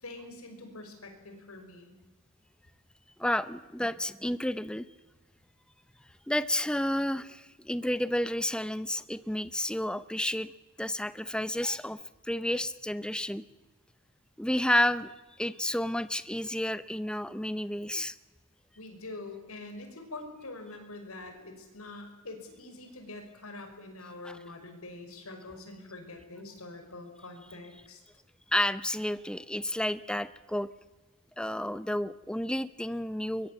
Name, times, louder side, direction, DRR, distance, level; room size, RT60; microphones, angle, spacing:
voice 1, 0.0-1.9 18.8-28.0, left 2 dB, 90° left, 5 dB, 5.7 m, -45 dB
voice 2, 3.2-4.8 6.3-10.5 10.8-12.0 12.3-13.4 14.4-15.1 15.4-18.1 24.2-24.4 28.5-30.7 31.4-33.5, left 1 dB, 5° left, 14 dB, 0.7 m, -31 dB
23.5 x 22.0 x 8.5 m, 1.2 s
head